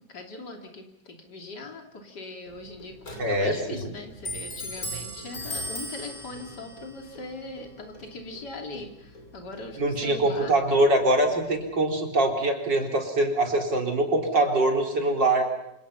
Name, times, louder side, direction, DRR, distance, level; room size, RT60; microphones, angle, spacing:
voice 1, 0.1-2.9 3.3-10.6, left 2 dB, 65° left, 2 dB, 3.6 m, -40 dB
Clock, 2.5-11.7, equal, 50° left, 6.1 m, -40 dB
voice 2, 3.2-3.9 9.8-15.5, right 1 dB, 80° right, 2 dB, 4.7 m, -23 dB
28.5 x 27.0 x 5.8 m, 0.83 s
omnidirectional pair, 1.9 m